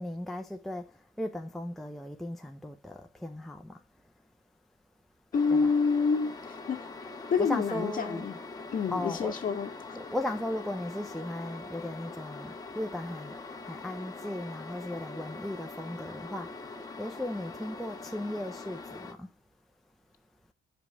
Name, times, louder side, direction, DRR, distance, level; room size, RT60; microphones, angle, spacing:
voice 1, 0.0-3.8 5.5-5.7 7.4-8.3 8.9-9.4 9.9-19.3, left 1 dB, ahead, 0.5 m, -37 dB
voice 2, 5.3-6.8 7.3-8.4 8.7-10.0, left 5 dB, 40° left, 1.7 m, -28 dB
sound 1, 5.3-19.1, left 3 dB, 15° left, 1.3 m, -43 dB
6.5 x 5.2 x 6.8 m
cardioid pair, 155°, 21 cm